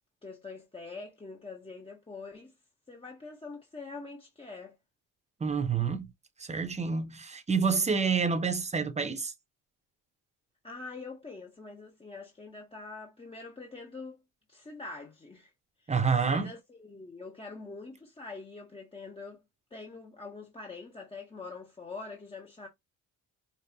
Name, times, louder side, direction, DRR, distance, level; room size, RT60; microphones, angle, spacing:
voice 1, 0.2-2.5 2.9-4.8 10.6-14.2 14.5-15.5 15.8-19.4 19.7-22.7, left 3 dB, 15° left, 0.9 m, -44 dB
voice 2, 5.4-6.1 6.4-9.3 15.9-16.5, right 5 dB, 20° right, 0.9 m, -28 dB
5.3 x 2.4 x 2.8 m
cardioid pair, 115°, 36 cm